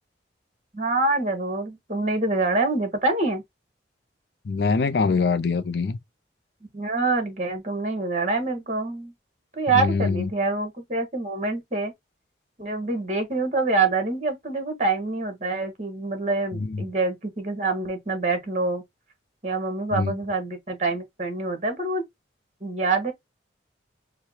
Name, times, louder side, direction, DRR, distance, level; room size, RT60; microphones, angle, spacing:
voice 1, 0.7-3.4 6.7-9.1 9.5-11.9 12.6-18.8 19.4-22.0 22.6-23.1, right 3 dB, 40° right, 1.5 m, -26 dB
voice 2, 4.5-6.0 9.7-10.3 16.5-16.8 19.9-20.1, left 4 dB, 60° left, 0.4 m, -24 dB
4.9 x 2.2 x 4.3 m
head